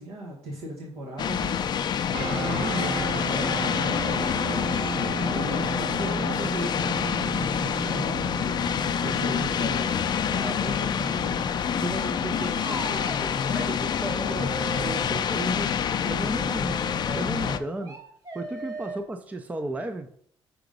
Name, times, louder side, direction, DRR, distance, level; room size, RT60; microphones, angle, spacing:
voice 1, 0.0-1.7 2.1-9.9 10.3-11.4 11.8-13.5, right 1 dB, 85° right, -1 dB, 1.3 m, -37 dB
sound 1, 1.2-17.6, left 8 dB, 45° left, 0.5 m, -27 dB
sound 2, 2.1-12.8, right 3 dB, 60° right, 1.2 m, -35 dB
sound 3, 12.4-13.2 13.5-13.7 14.0-15.0 16.3-19.0, right 4 dB, 35° right, 1.3 m, -38 dB
voice 2, 13.5-16.8 17.1-18.0 18.3-20.1, right 2 dB, 15° right, 7 dB, 0.4 m, -34 dB
5.9 x 3.8 x 5.2 m, 0.62 s
cardioid pair, 120°, 10 cm